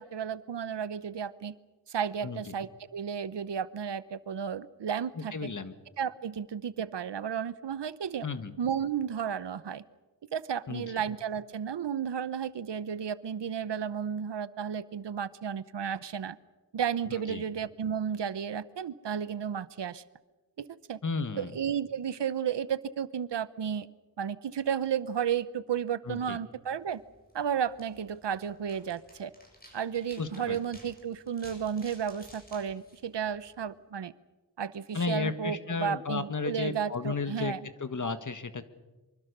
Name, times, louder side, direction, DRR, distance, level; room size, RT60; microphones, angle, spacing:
voice 1, 0.0-1.5 1.9-5.5 6.0-8.3 8.6-9.8 10.3-16.4 16.7-20.0 20.6-21.0 21.4-23.9 24.2-27.0 27.3-29.3 29.7-34.1 34.6-37.7, right 8 dB, 75° right, 16 dB, 0.9 m, -33 dB
voice 2, 5.2-5.7 8.2-8.5 10.7-10.8 17.3-17.4 21.0-21.5 26.1-26.4 30.2-30.6 34.9-37.5 37.8-38.6, left 4 dB, 45° left, 10 dB, 1.6 m, -33 dB
sound 1, 26.8-33.8, equal, 20° left, 7.5 m, -56 dB
25.0 x 24.5 x 6.8 m, 1.2 s
wide cardioid pair, 140°, 43 cm